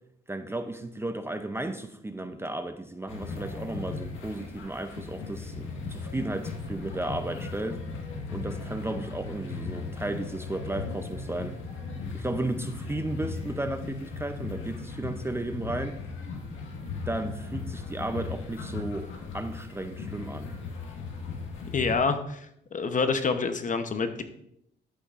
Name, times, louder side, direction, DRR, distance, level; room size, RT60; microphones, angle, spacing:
voice 1, 0.3-7.8 8.3-11.6 12.1-16.0 17.1-20.5, right 2 dB, 10° right, 8 dB, 0.6 m, -34 dB
sound 1, 3.1-21.9, left 4 dB, 85° left, 1.6 m, -37 dB
voice 2, 21.7-24.2, left 4 dB, 40° left, 8 dB, 0.9 m, -27 dB
11.5 x 8.2 x 2.5 m, 0.75 s
cardioid pair, 90°, 20 cm